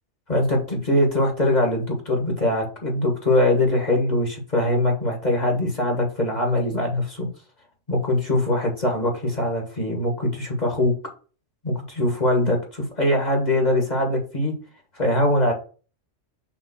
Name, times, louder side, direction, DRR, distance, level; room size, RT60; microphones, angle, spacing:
voice 1, 0.3-7.3 7.9-10.9 11.6-14.5 14.9-15.5, left 1 dB, 35° left, 1 dB, 1.7 m, -22 dB
6.1 x 3.6 x 6.1 m, 0.37 s
omnidirectional pair, 1.2 m